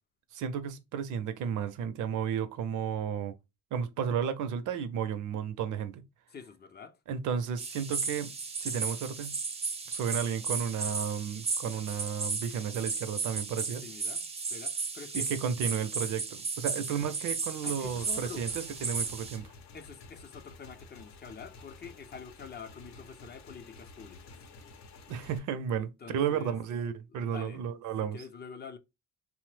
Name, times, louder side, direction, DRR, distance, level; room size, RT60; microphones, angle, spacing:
voice 1, 0.3-3.3 3.7-6.0 7.1-8.3 8.6-9.4 9.9-13.9 15.1-19.5 25.1-28.2, right 8 dB, 80° right, 0.5 m, -33 dB
voice 2, 6.3-7.0 13.8-14.2 14.5-15.3 17.6-18.4 19.7-24.2 25.8-26.6 27.1-27.6 28.1-28.8, left 5 dB, 35° left, 0.5 m, -46 dB
sound 1, 7.6-19.4, right 4 dB, 20° right, 0.4 m, -35 dB
Motorcycle / Engine, 17.8-25.4, left 3 dB, 65° left, 0.7 m, -51 dB
2.9 x 2.0 x 3.2 m
cardioid pair, 90°, 30 cm